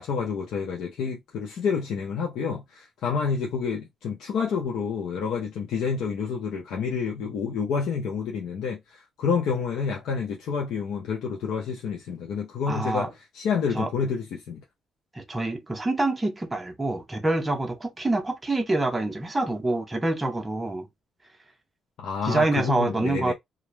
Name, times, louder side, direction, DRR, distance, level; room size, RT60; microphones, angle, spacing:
voice 1, 0.0-14.6 22.0-23.3, left 6 dB, 80° left, 0.6 m, -29 dB
voice 2, 12.7-13.1 13.8-13.9 15.1-20.9 22.2-23.3, right 2 dB, 15° right, 0.6 m, -26 dB
2.5 x 2.0 x 3.1 m
cardioid pair, 90°, 0 cm